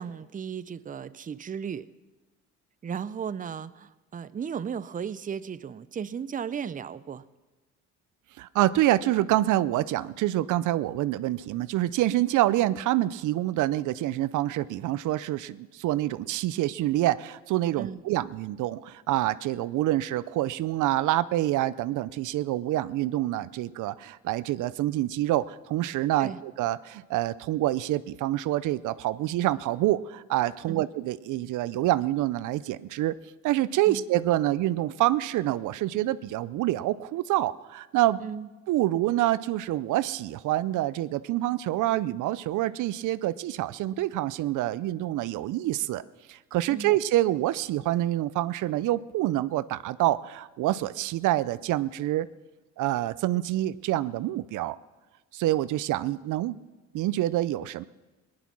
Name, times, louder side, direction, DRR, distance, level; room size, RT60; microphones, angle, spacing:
voice 1, 0.0-1.9 2.8-7.2 17.8-18.0 26.2-26.4 30.7-30.9 33.9-34.0 38.2-38.5 46.7-46.9, right 7 dB, 25° right, 16 dB, 0.5 m, -35 dB
voice 2, 8.4-33.1 33.4-38.2 38.7-46.0 46.3-52.3 52.8-54.8 55.3-56.6 56.9-57.8, right 15 dB, 80° right, 17 dB, 0.5 m, -27 dB
18.0 x 10.5 x 6.1 m, 1.2 s
cardioid pair, 90°, 30 cm